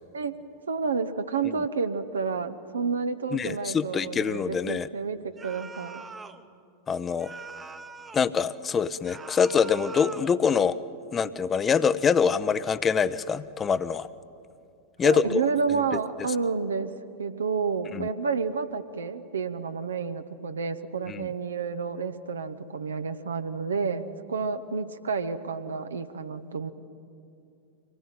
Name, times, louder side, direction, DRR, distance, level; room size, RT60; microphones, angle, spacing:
voice 1, 0.7-6.0 15.0-16.9 17.2-26.7, right 5 dB, 70° right, 9 dB, 0.9 m, -30 dB
voice 2, 3.3-4.9 6.9-7.3 8.1-10.8 11.1-14.1 15.0-15.4 17.9-18.1 21.1-21.3, left 6 dB, 20° left, 16 dB, 0.7 m, -25 dB
sound 1, 5.4-6.4 7.2-8.3 9.0-10.4, right 4 dB, 15° right, 1.0 m, -42 dB
25.0 x 18.0 x 9.3 m, 2.6 s
figure-of-eight pair, 90°, 0 cm